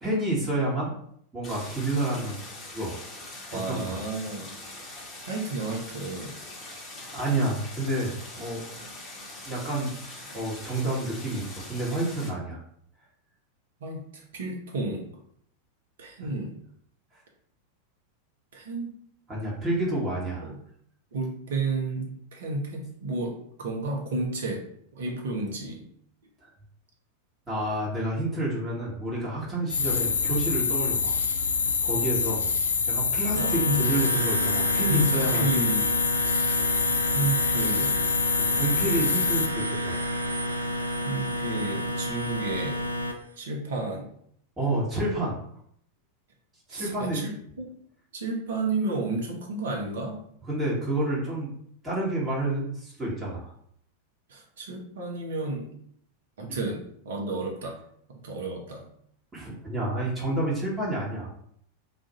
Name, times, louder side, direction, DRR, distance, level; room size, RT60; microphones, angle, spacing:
voice 1, 0.0-0.9 1.3-2.4 2.7-3.0 3.7-4.0 7.1-8.6 9.4-12.6 19.3-20.5 26.4-26.5 27.5-31.2 31.8-32.5 32.9-35.5 38.4-40.0 44.6-45.4 46.7-47.2 50.5-51.5 51.8-53.5 59.3-61.3, right 1 dB, 15° right, -6 dB, 1.2 m, -29 dB
Stream, 1.4-12.3, left 2 dB, 15° left, 1.1 m, -42 dB
voice 2, 3.5-4.5 5.3-6.3 13.8-15.1 16.0-16.6 18.5-18.9 20.4-20.6 21.1-24.6 24.9-25.8 33.3-33.8 34.9-35.8 37.1-37.9 41.0-42.8 43.4-44.1 46.7-47.7 48.1-50.2 54.3-55.7 56.4-57.8 58.1-58.8, right 2 dB, 60° right, 0 dB, 0.8 m, -31 dB
sound 1, 29.7-39.5, left 5 dB, 70° left, 0.3 m, -26 dB
sound 2, 33.4-43.1, equal, 80° right, 0.4 m, -30 dB
2.5 x 2.5 x 4.0 m, 0.66 s
figure-of-eight pair, 90°, 0 cm